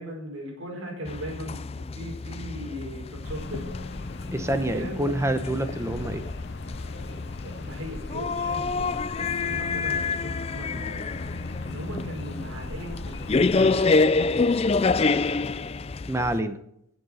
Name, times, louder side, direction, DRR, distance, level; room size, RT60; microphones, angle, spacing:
voice 1, 0.0-3.8 4.6-5.1 7.4-11.1 11.6-15.3, equal, 85° right, -1 dB, 5.0 m, -39 dB
sound 1, 1.1-16.4, left 3 dB, 30° left, 0.4 m, -27 dB
sound 2, 3.2-13.7, left 2 dB, 55° left, 0.9 m, -38 dB
voice 2, 4.3-6.2 16.1-16.6, right 1 dB, 15° right, 9 dB, 0.9 m, -27 dB
11.0 x 8.3 x 6.5 m, 0.73 s
head